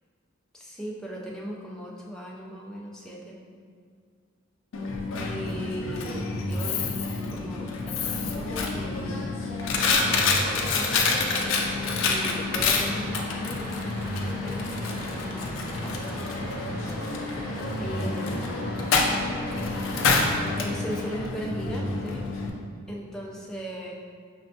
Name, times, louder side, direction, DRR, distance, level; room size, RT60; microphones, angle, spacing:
voice 1, 0.5-3.4 5.2-6.9 7.3-9.2 9.8-11.1 12.1-16.5 17.8-18.5 19.5-20.0 20.6-22.2 22.9-23.9, equal, 5° left, -4 dB, 0.4 m, -38 dB
Coin (dropping), 4.7-22.5, left 3 dB, 75° left, 0.4 m, -28 dB
sound 1, 9.6-21.2, left 1 dB, 45° left, 0.7 m, -39 dB
6.2 x 2.1 x 2.7 m, 2.1 s
head